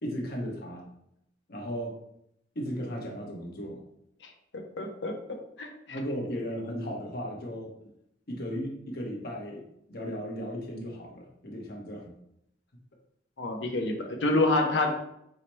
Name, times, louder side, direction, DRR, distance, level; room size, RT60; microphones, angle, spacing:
voice 1, 0.0-0.9 1.5-2.0 2.5-3.8 5.9-7.7 8.3-12.2, equal, 60° left, 0 dB, 1.0 m, -36 dB
voice 2, 4.2-5.7 13.4-14.9, left 2 dB, 75° left, 4 dB, 0.7 m, -28 dB
4.8 x 2.1 x 4.4 m, 0.77 s
head